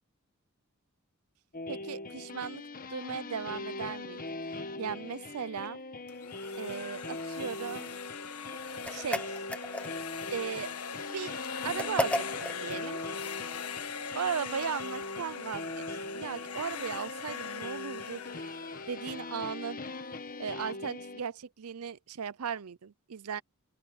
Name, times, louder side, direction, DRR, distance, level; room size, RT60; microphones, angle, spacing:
sound 1, 1.5-21.2, left 2 dB, 40° left, 1.3 m, -41 dB
voice 1, 1.7-2.6 2.9-5.8 6.5-7.9 8.9-9.4 10.3-10.7 11.1-11.4 11.6-13.0 14.1-18.2 18.9-19.8 20.4-23.4, right 7 dB, 85° right, 0.6 m, -37 dB
sound 2, 6.1-19.9, left 6 dB, 85° left, 1.7 m, -41 dB
sound 3, 8.8-10.2 11.8-12.6, left 1 dB, 5° left, 1.1 m, -33 dB
open air
head